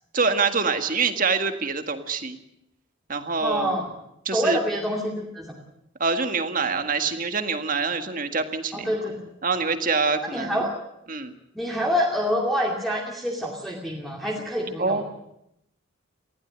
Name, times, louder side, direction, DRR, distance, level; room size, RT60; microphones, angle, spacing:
voice 1, 0.1-2.4 3.1-3.8 4.2-4.6 6.0-8.9 9.4-10.6 11.1-11.3 14.8-15.0, right 4 dB, 40° right, 8 dB, 1.8 m, -25 dB
voice 2, 3.4-3.9 4.3-5.5 8.7-9.1 10.3-10.8 11.5-15.0, equal, ahead, -2 dB, 2.5 m, -26 dB
19.5 x 15.5 x 9.3 m, 0.79 s
head